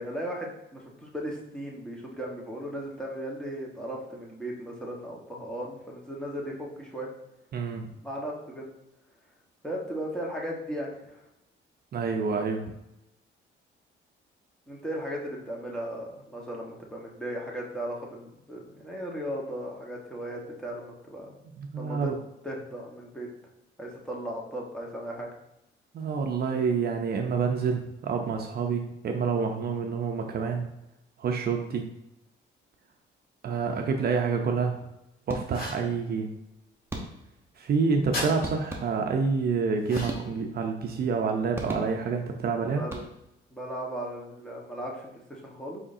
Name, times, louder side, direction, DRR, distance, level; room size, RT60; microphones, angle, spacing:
voice 1, 0.0-7.1 8.0-8.6 9.6-11.2 14.7-21.3 21.8-22.1 22.4-23.3 23.8-25.3 42.7-43.1 43.5-45.8, equal, 5° left, -3 dB, 1.2 m, -36 dB
voice 2, 7.5-7.9 11.9-12.7 21.5-22.1 25.9-30.7 31.2-31.9 33.4-34.8 35.3-36.3 37.6-42.8, right 5 dB, 50° right, 3 dB, 0.5 m, -28 dB
sound 1, 35.3-35.8 36.9-37.5 38.4-39.3 39.9-40.7 41.5-42.3 42.8-43.5, right 2 dB, 10° right, 0.9 m, -38 dB
sound 2, 35.5-35.9 38.1-38.3 39.8-40.4, left 2 dB, 50° left, 1.5 m, -34 dB
4.9 x 3.6 x 2.7 m, 0.88 s
cardioid pair, 90°, 20 cm